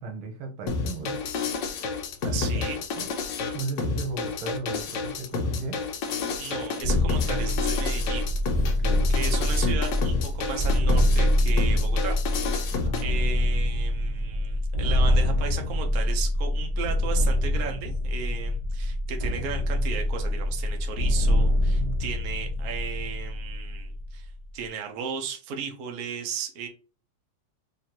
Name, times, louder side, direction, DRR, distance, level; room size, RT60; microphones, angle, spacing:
voice 1, 0.0-1.2 2.2-2.6 3.0-3.1 3.5-5.8 8.7-9.1 12.7-13.0, right 3 dB, 85° right, 1.7 m, -35 dB
sound 1, 0.7-13.0, left 4 dB, 70° left, 1.3 m, -30 dB
voice 2, 2.3-2.8 6.4-8.3 9.1-12.2 12.5-12.8 13.0-26.7, right 7 dB, 60° right, 1.1 m, -35 dB
sound 2, 6.8-24.5, left 1 dB, 40° left, 0.4 m, -25 dB
sound 3, 8.2-24.0, left 2 dB, 25° right, 1.7 m, -36 dB
3.7 x 3.3 x 2.9 m
omnidirectional pair, 2.2 m